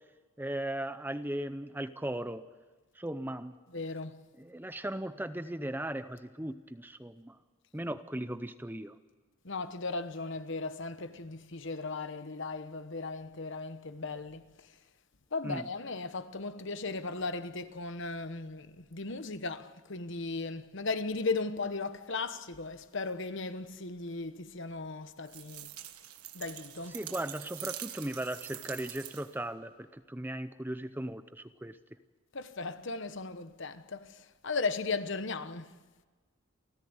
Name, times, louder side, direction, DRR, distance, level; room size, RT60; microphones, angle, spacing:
voice 1, 0.4-2.4 3.0-3.5 4.4-7.4 7.7-8.9 15.4-15.7 26.9-31.8, right 1 dB, 10° right, 0.6 m, -37 dB
voice 2, 3.7-4.2 9.4-14.7 15.3-25.8 26.3-27.0 32.3-35.8, left 3 dB, 55° left, 1.1 m, -37 dB
sound 1, 25.3-29.5, right 13 dB, 85° right, 1.5 m, -44 dB
29.0 x 14.5 x 8.1 m
head